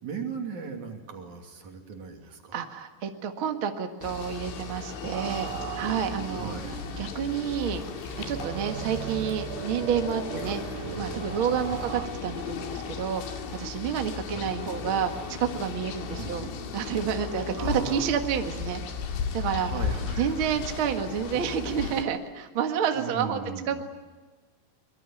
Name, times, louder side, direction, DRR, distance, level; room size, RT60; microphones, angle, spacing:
voice 1, 0.0-2.6 6.2-6.8 11.7-11.8 14.3-14.5 16.2-16.6 17.6-18.1 19.6-20.6 22.9-23.8, right 5 dB, 45° right, 3 dB, 3.8 m, -38 dB
voice 2, 2.5-6.5 7.0-7.8 8.3-10.6 10.9-16.4 16.7-18.8 19.3-19.7 20.2-23.4 23.7-23.8, right 8 dB, 70° right, 5 dB, 1.2 m, -29 dB
sound 1, 4.0-22.0, left 6 dB, 85° left, 4.7 m, -36 dB
sound 2, 5.1-12.1, right 10 dB, 85° right, 3.5 m, -38 dB
Breathing / Bathtub (filling or washing) / Splash splatter, 5.4-6.1 6.5-7.2 7.5-10.8, left 3 dB, 50° left, 6.6 m, -49 dB
24.0 x 22.5 x 9.2 m, 1.3 s
omnidirectional pair, 5.3 m